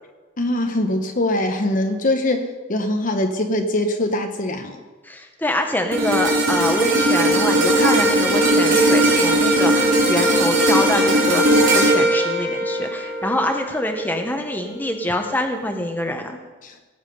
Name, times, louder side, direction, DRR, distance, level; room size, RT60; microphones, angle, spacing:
voice 1, 0.4-4.8 16.6-16.7, left 1 dB, 45° left, 5 dB, 1.0 m, -22 dB
voice 2, 5.0-16.4, left 1 dB, 10° left, 4 dB, 1.2 m, -25 dB
sound 1, 5.9-14.3 14.7-14.9, right 1 dB, 75° right, 2.9 m, -18 dB
18.0 x 7.3 x 5.5 m, 1.3 s
head